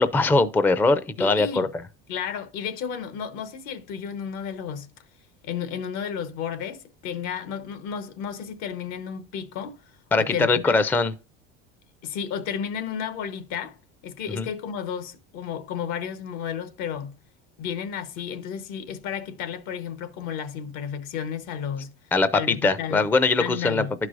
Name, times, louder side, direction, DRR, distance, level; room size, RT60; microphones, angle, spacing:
voice 1, 0.0-1.7 10.1-11.1 14.3-14.5 22.1-23.8, left 3 dB, 5° left, 0.4 m, -21 dB
voice 2, 1.2-1.7 2.1-4.9 5.4-9.8 10.2-10.7 12.0-13.7 14.0-17.1 17.6-21.9 22.3-23.0 23.4-23.9, left 8 dB, 75° left, 1.0 m, -32 dB
11.5 x 4.7 x 2.4 m
supercardioid pair, 115°, 30 cm